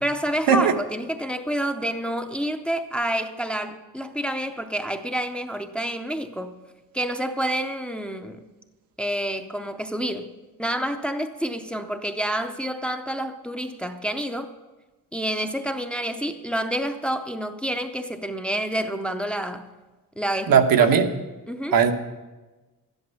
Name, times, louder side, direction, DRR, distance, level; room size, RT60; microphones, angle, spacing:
voice 1, 0.0-6.5 6.9-8.5 9.0-10.3 10.6-14.5 15.1-19.7 20.2-20.9 21.5-21.8, right 1 dB, 5° left, 7 dB, 0.6 m, -28 dB
voice 2, 20.5-21.1 21.7-21.9, right 7 dB, 90° right, 6 dB, 1.2 m, -17 dB
12.5 x 10.5 x 5.5 m, 1.2 s
wide cardioid pair, 160°, 34 cm